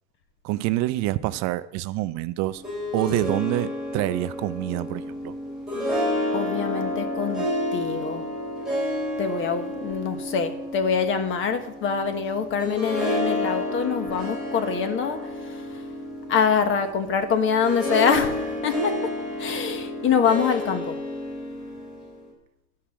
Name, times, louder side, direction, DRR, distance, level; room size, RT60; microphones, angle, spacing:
voice 1, 0.4-2.6 2.9-5.3, right 16 dB, 60° right, 16 dB, 0.5 m, -26 dB
Harp, 2.4-22.3, left 1 dB, ahead, 3.6 m, -30 dB
voice 2, 6.3-7.5 7.7-8.2 9.2-15.7 16.3-18.9 19.4-21.0, left 6 dB, 40° left, 8 dB, 1.2 m, -25 dB
12.0 x 4.8 x 7.1 m, 0.87 s
cardioid pair, 160°, 31 cm